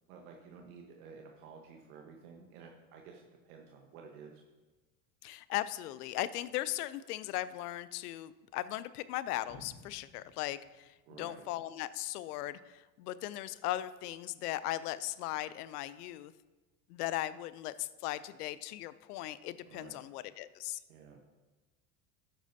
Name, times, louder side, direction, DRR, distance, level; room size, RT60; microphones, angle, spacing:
voice 1, 0.1-4.4 11.1-11.4 19.7-20.0 20.9-21.4, right 5 dB, 75° right, 1 dB, 1.2 m, -52 dB
voice 2, 5.2-16.3 16.9-20.8, left 14 dB, 85° left, 16 dB, 0.6 m, -38 dB
sound 1, 9.5-11.6 12.0-12.1, left 3 dB, 60° left, 1.6 m, -56 dB
12.0 x 9.0 x 2.7 m, 1.2 s
hypercardioid pair, 90°, 45 cm